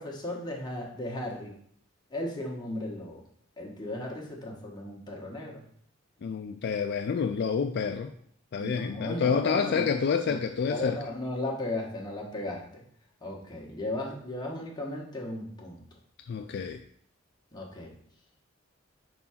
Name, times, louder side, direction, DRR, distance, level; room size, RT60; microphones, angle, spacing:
voice 1, 0.0-1.5 2.1-3.2 3.6-5.6 8.6-9.9 10.3-10.4 10.7-12.8 13.2-15.9 17.5-17.9, left 1 dB, 20° left, -1 dB, 1.3 m, -36 dB
voice 2, 6.2-8.1 8.5-11.0 16.3-16.8, left 6 dB, 55° left, 6 dB, 0.3 m, -28 dB
4.7 x 3.9 x 5.7 m, 0.66 s
head